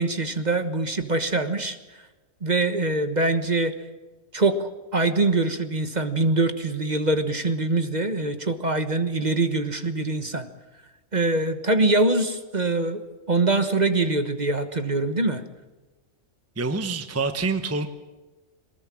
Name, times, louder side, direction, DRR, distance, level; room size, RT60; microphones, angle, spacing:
voice 1, 0.0-1.8 2.4-3.7 4.3-10.5 11.1-13.0 13.3-15.4, right 2 dB, 30° right, 9 dB, 1.4 m, -23 dB
voice 2, 16.6-17.9, right 3 dB, 10° right, 8 dB, 1.0 m, -26 dB
23.0 x 20.0 x 7.6 m, 1.2 s
omnidirectional pair, 1.4 m